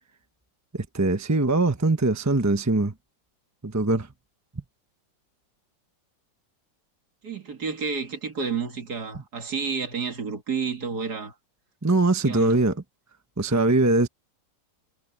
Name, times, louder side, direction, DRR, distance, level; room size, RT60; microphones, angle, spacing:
voice 1, 0.7-2.9 3.6-4.1 11.8-12.8 13.4-14.1, right 2 dB, 10° right, 0.8 m, -22 dB
voice 2, 7.2-11.3 12.2-12.6, right 5 dB, 55° right, 2.8 m, -30 dB
omnidirectional pair, 2.0 m